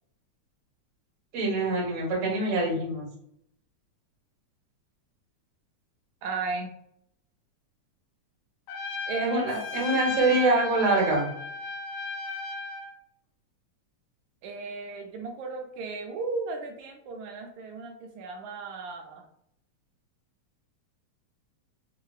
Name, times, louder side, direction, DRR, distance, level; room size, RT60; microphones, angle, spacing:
voice 1, 1.3-3.0 9.2-11.2, right 2 dB, 65° right, -3 dB, 0.7 m, -25 dB
voice 2, 6.2-6.7 9.1-9.5 14.4-19.2, right 3 dB, 80° right, 3 dB, 1.7 m, -35 dB
Trumpet, 8.7-12.9, left 4 dB, 75° left, 1.8 m, -35 dB
4.9 x 2.5 x 2.3 m, 0.72 s
omnidirectional pair, 3.5 m